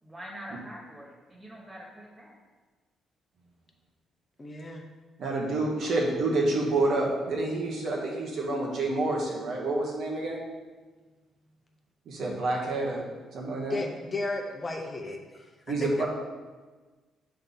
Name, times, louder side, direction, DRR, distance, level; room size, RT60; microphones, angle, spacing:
voice 1, 0.0-2.4, equal, 25° right, -2 dB, 1.8 m, -44 dB
voice 2, 4.4-4.8 13.7-15.2 15.8-16.1, left 2 dB, 30° left, 2 dB, 0.7 m, -34 dB
voice 3, 5.2-10.4 12.1-13.0 13.3-13.8 15.7-16.1, right 2 dB, 65° right, -2 dB, 1.3 m, -28 dB
5.4 x 3.5 x 5.4 m, 1.3 s
cardioid pair, 90°, 0 cm